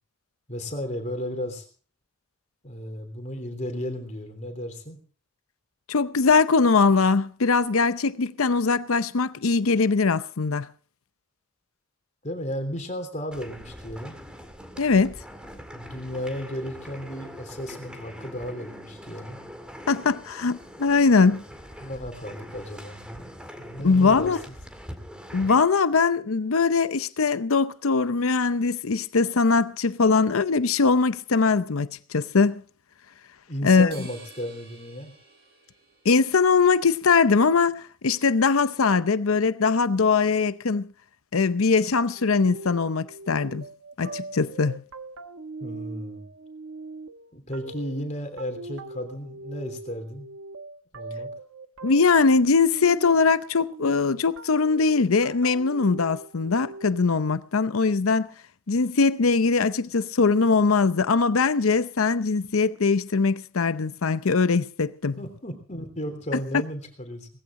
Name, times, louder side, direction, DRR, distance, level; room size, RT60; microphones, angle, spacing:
voice 1, 0.5-1.6 2.6-5.0 12.2-14.2 15.7-19.4 21.8-23.3 23.6-24.4 33.5-35.1 45.6-46.3 47.3-50.3 50.9-51.3 65.2-67.3, equal, 35° left, 3.3 m, -34 dB
voice 2, 5.9-10.7 14.8-15.2 19.9-21.4 23.8-24.4 25.3-32.6 33.6-33.9 36.0-40.9 41.3-43.6 44.0-44.8 51.8-58.3 58.7-65.2, left 4 dB, 90° left, 0.7 m, -21 dB
sound 1, 13.3-25.6, equal, 5° right, 2.0 m, -43 dB
sound 2, 33.9-36.6, right 3 dB, 50° right, 5.7 m, -49 dB
sound 3, 41.9-57.3, right 3 dB, 75° right, 1.0 m, -41 dB
19.5 x 15.0 x 3.8 m
head